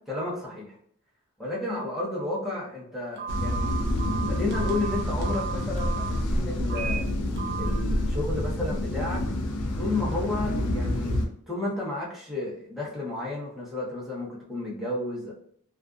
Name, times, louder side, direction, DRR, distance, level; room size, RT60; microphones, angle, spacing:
voice 1, 0.1-0.7 1.4-3.7 4.3-7.0 7.6-9.2 9.8-11.2 11.5-15.3, left 2 dB, ahead, -7 dB, 0.8 m, -32 dB
Telephone, 3.2-6.1 6.6-7.0 7.4-7.7, right 6 dB, 45° right, 0.6 m, -34 dB
sound 1, 3.3-11.3, left 1 dB, 90° left, 0.5 m, -28 dB
2.5 x 2.4 x 2.3 m, 0.65 s
head